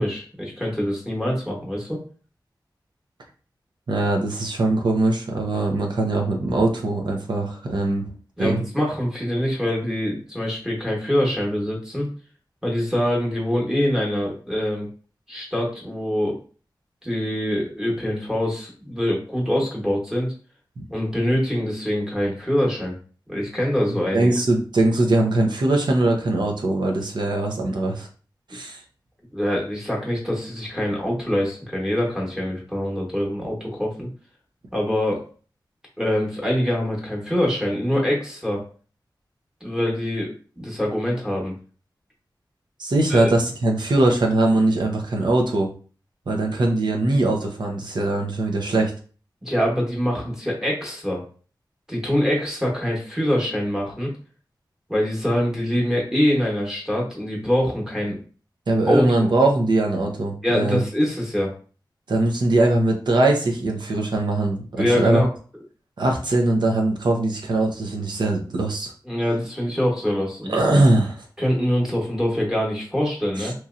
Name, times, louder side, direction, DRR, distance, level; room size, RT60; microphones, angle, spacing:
voice 1, 0.0-2.0 8.4-12.1 12.6-14.9 15.3-16.4 17.0-20.3 20.9-23.0 23.3-24.3 29.3-34.1 34.7-35.2 36.0-38.6 39.6-41.5 43.1-43.3 49.4-51.2 51.9-54.1 54.9-58.2 58.9-59.3 60.4-61.5 64.8-65.3 69.1-70.6 71.4-73.5, equal, 5° right, -2 dB, 1.1 m, -24 dB
voice 2, 3.9-8.1 8.4-8.6 20.8-20.9 23.9-28.1 28.5-28.8 42.8-45.7 46.3-48.9 58.7-60.8 62.1-65.2 66.0-68.9 70.5-71.2 73.4-73.5, right 2 dB, 70° right, 1 dB, 0.7 m, -21 dB
3.0 x 2.7 x 2.4 m, 0.39 s
wide cardioid pair, 100°, 8 cm